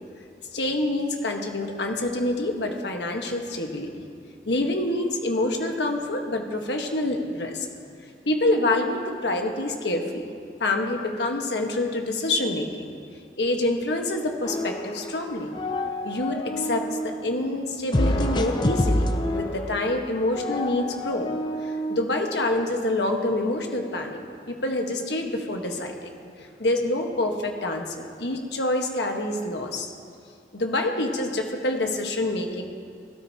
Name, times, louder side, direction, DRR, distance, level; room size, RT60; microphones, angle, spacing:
voice 1, 0.5-3.9 4.5-7.7 8.2-10.3 10.6-12.7 13.4-15.5 16.0-21.3 21.6-26.1 26.4-29.9 30.5-32.6, left 2 dB, 80° left, 3 dB, 1.3 m, -27 dB
sound 1, 14.4-15.2 15.4-17.1 17.9-22.0, left 1 dB, 25° left, 0.5 m, -27 dB
17.5 x 12.5 x 2.9 m, 2.3 s
head